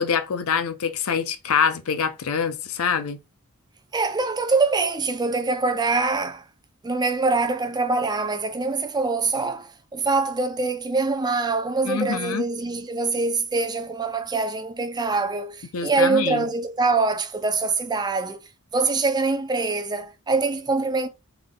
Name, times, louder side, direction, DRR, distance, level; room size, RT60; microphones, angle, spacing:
voice 1, 0.0-3.2 11.9-12.4 15.7-16.5, left 6 dB, 80° left, 0.5 m, -25 dB
voice 2, 3.9-6.4 6.8-18.4 18.7-21.1, right 3 dB, 20° right, 0.4 m, -24 dB
3.7 x 3.4 x 2.3 m
head